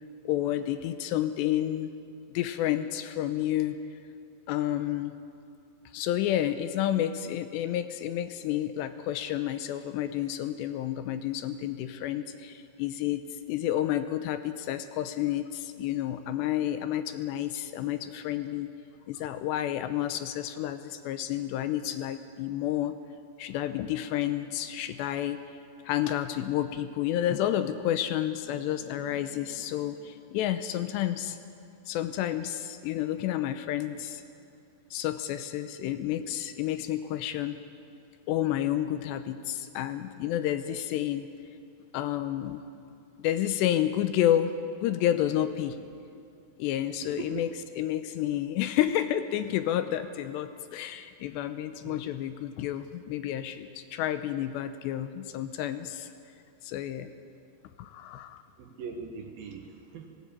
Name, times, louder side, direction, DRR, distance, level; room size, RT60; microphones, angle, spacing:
voice 1, 0.3-1.9 2.3-3.8 4.5-5.1 5.9-13.2 13.5-18.7 19.1-23.0 23.4-25.4 25.8-31.4 31.9-34.2 34.9-37.6 38.3-41.3 41.9-42.6 43.2-44.5 44.8-45.8 46.6-56.1 56.6-57.1 57.8-58.4, left 12 dB, 80° left, 10 dB, 2.7 m, -30 dB
voice 2, 47.0-47.5 51.8-52.0 58.6-60.1, right 5 dB, 65° right, 4 dB, 2.7 m, -40 dB
18.5 x 17.5 x 8.8 m, 2.5 s
omnidirectional pair, 5.2 m